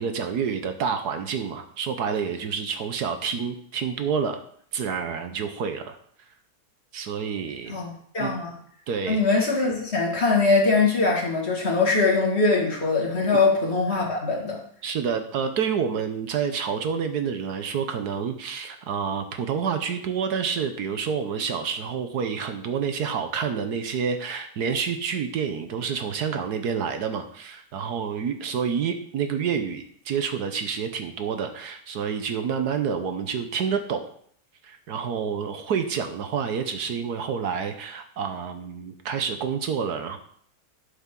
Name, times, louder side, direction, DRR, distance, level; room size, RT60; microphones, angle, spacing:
voice 1, 0.0-4.4 4.7-6.0 6.9-7.8 8.2-8.4 8.9-9.2 14.8-34.1 34.6-40.2, right 6 dB, 70° right, 7 dB, 1.4 m, -28 dB
voice 2, 7.7-8.5 9.1-14.6, left 3 dB, 40° left, -2 dB, 2.3 m, -22 dB
12.0 x 7.1 x 3.8 m, 0.62 s
omnidirectional pair, 1.8 m